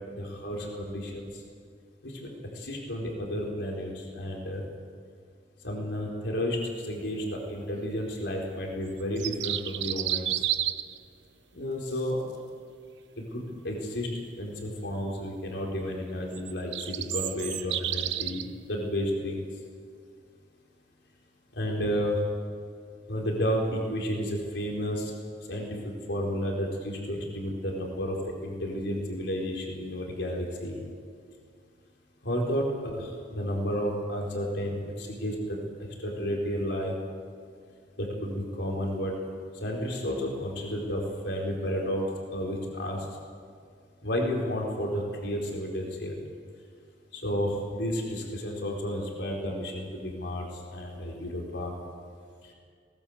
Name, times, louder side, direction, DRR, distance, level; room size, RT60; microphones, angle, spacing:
voice 1, 0.1-1.3 2.0-2.3 2.5-4.6 5.6-6.6 6.9-10.4 11.5-12.2 13.2-14.1 14.4-19.4 21.6-22.2 23.1-25.1 25.5-25.7 26.1-28.2 28.4-30.8 32.2-35.6 36.0-36.9 38.0-39.1 39.6-42.0 42.3-43.0 44.0-46.1 47.1-51.7, equal, 80° left, -1 dB, 4.4 m, -31 dB
sound 1, 9.0-11.0 16.3-18.4, right 12 dB, 80° right, 0.9 m, -31 dB
21.5 x 19.5 x 8.0 m, 2.2 s
head